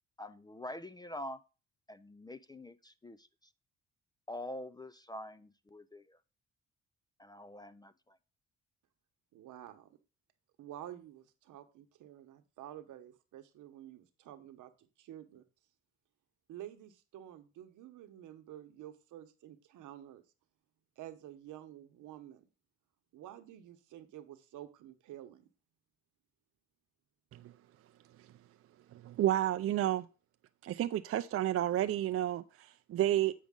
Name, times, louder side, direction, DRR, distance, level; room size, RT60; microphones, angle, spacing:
voice 1, 0.2-1.4 1.9-3.3 4.3-6.2 7.2-8.2, left 1 dB, 15° left, 0.4 m, -45 dB
voice 2, 9.3-10.0 10.6-15.4 16.5-20.2 21.0-22.5 23.1-25.5, right 12 dB, 80° right, 1.0 m, -50 dB
voice 3, 28.9-30.1 30.6-33.3, right 12 dB, 50° right, 0.4 m, -31 dB
8.3 x 5.1 x 3.6 m
cardioid pair, 90°, 30 cm